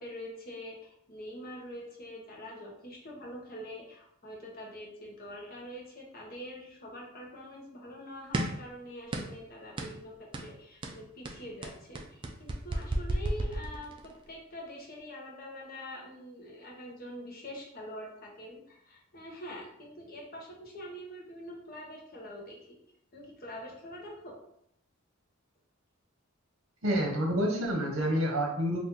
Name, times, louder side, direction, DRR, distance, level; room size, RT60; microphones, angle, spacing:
voice 1, 0.0-10.1 10.4-22.8 23.1-24.4, equal, 45° left, -1 dB, 0.8 m, -45 dB
sound 1, 8.3-8.7 9.1-9.4 9.8-10.0 10.3-10.5 10.8-14.2, right 1 dB, 25° right, 0.3 m, -33 dB
voice 2, 26.8-28.8, equal, 70° right, 0 dB, 0.9 m, -28 dB
2.8 x 2.5 x 3.6 m, 0.73 s
head